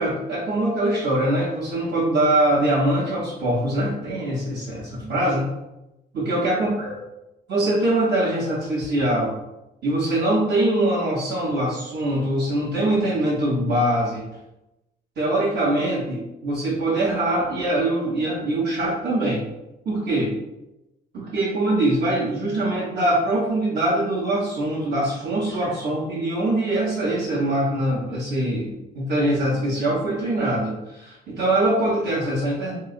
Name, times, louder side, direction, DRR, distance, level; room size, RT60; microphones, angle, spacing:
voice 1, 0.0-5.4 6.1-7.0 7.5-9.4 9.8-14.3 15.2-19.5 19.8-20.3 21.1-32.7, right 1 dB, 60° right, -8 dB, 0.9 m, -23 dB
3.1 x 2.8 x 2.4 m, 0.94 s
cardioid pair, 90°, 20 cm